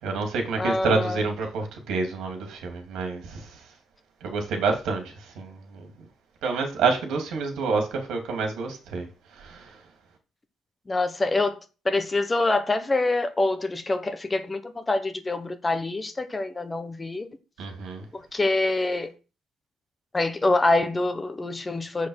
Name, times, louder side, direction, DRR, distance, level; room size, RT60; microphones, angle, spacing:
voice 1, 0.0-3.5 4.2-5.9 6.4-9.1 9.4-9.7 17.6-18.0, right 4 dB, 85° right, 2.9 m, -28 dB
voice 2, 0.6-1.2 10.9-11.6 11.8-17.3 18.1-19.1 20.1-22.1, left 2 dB, 15° left, 1.1 m, -25 dB
7.4 x 6.6 x 5.8 m
cardioid pair, 165°, 0 cm